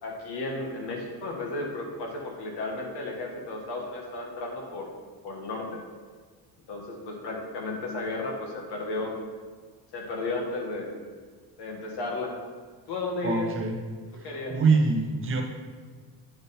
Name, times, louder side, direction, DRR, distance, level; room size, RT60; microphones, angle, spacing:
voice 1, 0.0-4.9 5.2-5.8 6.7-9.1 9.9-10.9 11.6-12.4 12.9-13.5 14.2-14.5, left 2 dB, 65° left, 0 dB, 1.5 m, -33 dB
voice 2, 13.2-13.8 14.2-15.4, right 4 dB, 30° right, 3 dB, 0.6 m, -25 dB
8.8 x 3.6 x 4.2 m, 1.5 s
cardioid pair, 175°, 43 cm